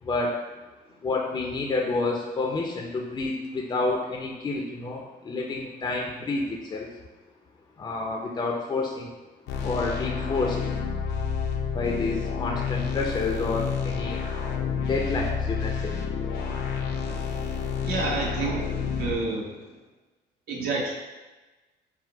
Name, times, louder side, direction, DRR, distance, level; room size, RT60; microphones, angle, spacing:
voice 1, 0.0-0.4 1.0-6.9 7.8-9.1 9.6-10.6 11.7-14.2 14.8-16.0, left 3 dB, 25° left, 0 dB, 0.5 m, -29 dB
sound 1, 9.5-19.2, left 6 dB, 75° left, 0.6 m, -29 dB
voice 2, 17.8-19.5 20.5-20.9, right 3 dB, 65° right, -3 dB, 1.2 m, -29 dB
4.5 x 2.0 x 4.4 m, 1.2 s
cardioid pair, 110°, 17 cm